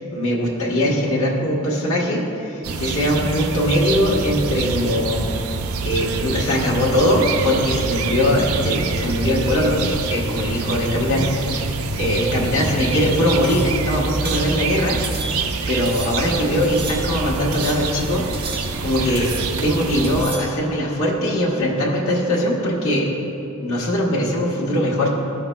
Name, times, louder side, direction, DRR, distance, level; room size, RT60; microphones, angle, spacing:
voice 1, 0.0-5.3 5.8-15.2 15.7-18.2 18.5-19.3 19.6-23.1 23.6-25.1, equal, 70° left, -6 dB, 1.3 m, -21 dB
sound 1, 2.6-20.2, right 4 dB, 90° right, 0.5 m, -26 dB
sound 2, 13.4-13.8 14.2-14.5 15.0-15.6 15.9-16.2 16.6-17.2 17.5-18.0 18.3-18.9 19.2-19.7 20.0-20.6, right 3 dB, 50° right, 0.9 m, -34 dB
13.5 x 5.8 x 2.2 m, 2.9 s
head